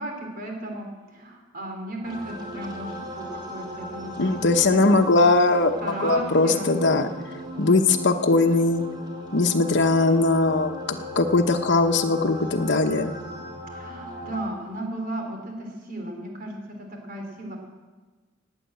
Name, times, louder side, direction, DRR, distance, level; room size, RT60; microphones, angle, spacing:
voice 1, 0.0-5.0 5.8-6.7 13.7-17.6, right 1 dB, 50° right, 2 dB, 3.6 m, -35 dB
sound 1, 2.0-14.4, equal, 25° right, 3.1 m, -38 dB
voice 2, 4.2-7.1 7.6-8.8 9.3-13.1, left 3 dB, 60° left, 5 dB, 1.0 m, -20 dB
17.5 x 9.1 x 7.8 m, 1.3 s
head